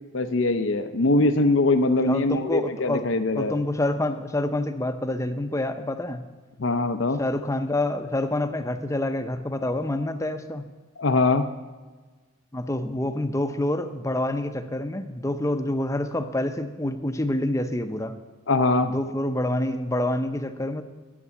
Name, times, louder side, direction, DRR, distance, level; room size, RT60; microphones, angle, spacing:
voice 1, 0.1-3.6 6.6-7.2 11.0-11.5 18.5-18.9, left 2 dB, 65° left, 8 dB, 0.7 m, -22 dB
voice 2, 2.0-3.1 3.3-6.2 7.2-10.7 12.5-18.2 18.8-20.8, left 1 dB, 15° left, 7 dB, 0.7 m, -27 dB
11.0 x 8.3 x 7.0 m, 1.3 s
head